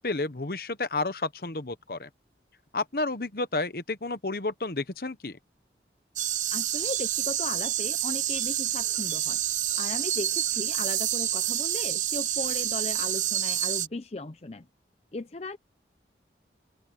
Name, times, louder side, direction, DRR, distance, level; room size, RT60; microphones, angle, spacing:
voice 1, 0.0-2.1 2.7-5.4, left 3 dB, 55° left, 1.1 m, -31 dB
sound 1, 6.2-13.9, right 12 dB, 45° right, 0.7 m, -28 dB
voice 2, 6.5-9.4 9.8-14.7 15.1-15.6, left 3 dB, 35° left, 0.6 m, -37 dB
open air
head